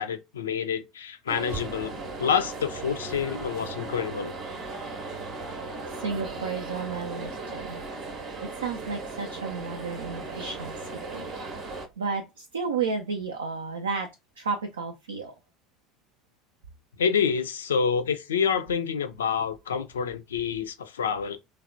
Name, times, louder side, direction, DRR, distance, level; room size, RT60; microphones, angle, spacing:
voice 1, 0.0-4.3 17.0-21.4, left 7 dB, 75° left, 0.3 m, -28 dB
sound 1, 1.3-11.9, right 3 dB, 45° right, 0.7 m, -37 dB
voice 2, 6.0-7.8 8.4-10.7 11.1-11.2 12.0-14.1 14.4-15.3, right 5 dB, 75° right, 0.3 m, -32 dB
3.2 x 2.1 x 2.5 m
figure-of-eight pair, 65°, 0 cm